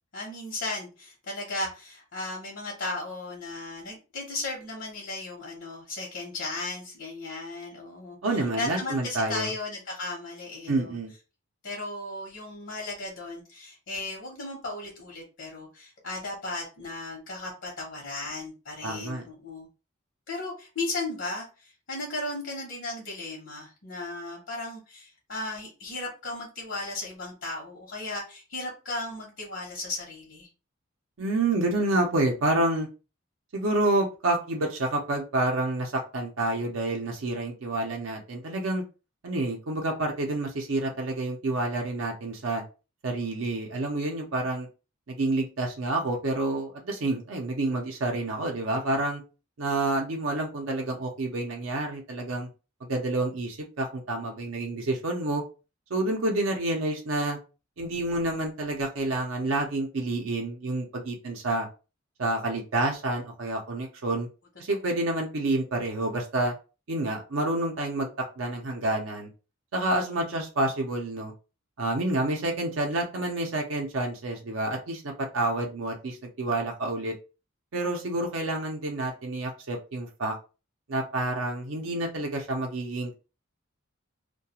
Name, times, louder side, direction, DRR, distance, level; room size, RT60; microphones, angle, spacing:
voice 1, 0.1-10.9 11.6-19.7 20.3-30.5 64.8-65.1, left 2 dB, 70° left, -1 dB, 0.8 m, -36 dB
voice 2, 8.2-9.5 10.7-11.1 18.8-19.3 31.2-32.9 33.5-38.8 39.2-42.6 43.0-44.7 45.1-49.2 49.6-52.5 52.9-55.4 55.9-57.4 57.8-61.7 62.2-64.3 64.6-66.5 66.9-69.3 69.7-71.3 71.8-77.2 77.7-80.3 80.9-83.1, right 2 dB, 80° right, 1 dB, 0.6 m, -28 dB
2.3 x 2.2 x 2.8 m, 0.32 s
head